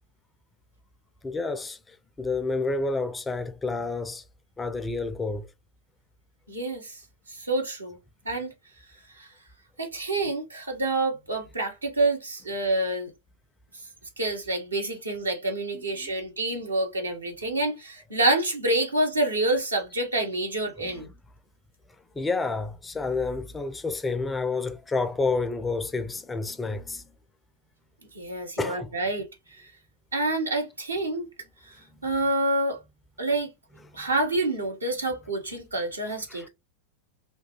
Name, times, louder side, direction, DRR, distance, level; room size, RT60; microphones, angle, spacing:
voice 1, 1.2-4.2 4.6-5.5 15.7-16.1 20.8-21.0 22.1-27.1 28.6-28.9 33.9-34.1 36.3-36.5, left 3 dB, 10° left, 0.3 m, -30 dB
voice 2, 6.5-7.0 7.3-8.0 8.2-8.5 9.1-9.3 9.8-13.1 14.2-21.1 28.1-29.7 30.1-31.3 31.7-32.8 33.2-33.5 33.9-36.5, right 2 dB, 80° right, 0.9 m, -27 dB
3.0 x 2.2 x 2.9 m
figure-of-eight pair, 90°, 0 cm